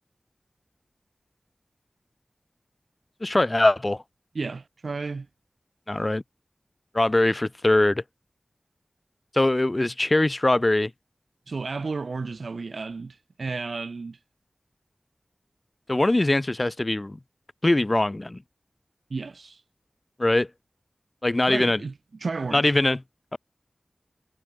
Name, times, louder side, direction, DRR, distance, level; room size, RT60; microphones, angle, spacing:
voice 1, 3.2-4.0 5.9-6.2 6.9-8.0 9.3-10.9 15.9-17.2 17.6-18.4 20.2-20.5 21.2-21.8 22.5-23.0 23.3-23.4, left 2 dB, 35° left, 7.9 m, -22 dB
voice 2, 4.3-5.3 11.5-14.2 19.1-19.6 21.5-21.9 22.2-22.8, right 4 dB, 85° right, 3.4 m, -32 dB
wide cardioid pair, 55°, 0 cm